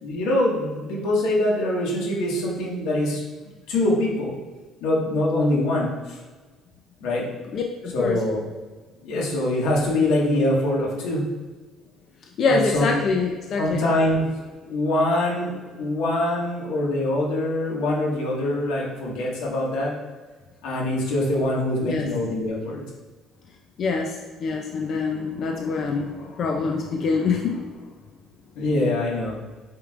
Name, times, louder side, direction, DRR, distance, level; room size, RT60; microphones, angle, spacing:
voice 1, 0.0-3.2 3.7-4.4 4.8-6.2 7.0-7.3 7.9-8.4 9.0-11.3 12.5-12.9 13.6-14.3 14.7-19.9 20.6-22.8 28.6-29.3, left 1 dB, 85° left, -3 dB, 1.8 m, -24 dB
voice 2, 7.5-8.2 12.4-13.9 21.8-22.1 23.8-24.1 24.4-27.8, left 4 dB, 40° left, 1 dB, 0.5 m, -25 dB
8.3 x 4.6 x 2.5 m, 1.3 s
cardioid pair, 175°, 0 cm